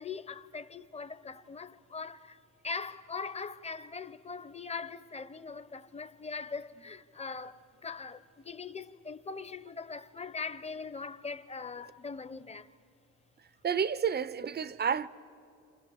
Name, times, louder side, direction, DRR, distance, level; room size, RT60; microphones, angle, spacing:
voice 1, 0.0-12.7, left 4 dB, 20° left, 0.9 m, -41 dB
voice 2, 13.6-15.1, right 7 dB, 35° right, 0.7 m, -30 dB
29.5 x 27.0 x 7.0 m
cardioid pair, 90°, 30 cm